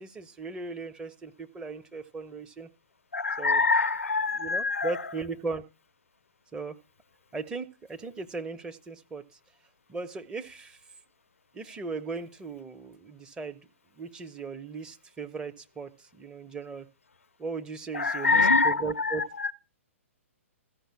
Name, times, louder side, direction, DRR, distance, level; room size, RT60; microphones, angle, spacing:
voice 1, 0.0-2.7 3.4-3.7 4.3-5.6 6.5-6.8 7.3-9.2 9.9-10.8 11.5-13.6 14.0-16.9 17.4-19.2, right 4 dB, 10° right, 1.0 m, -37 dB
voice 2, 3.1-4.9 17.9-19.5, left 3 dB, 70° left, 0.5 m, -25 dB
14.0 x 5.6 x 8.7 m
figure-of-eight pair, 115°, 7 cm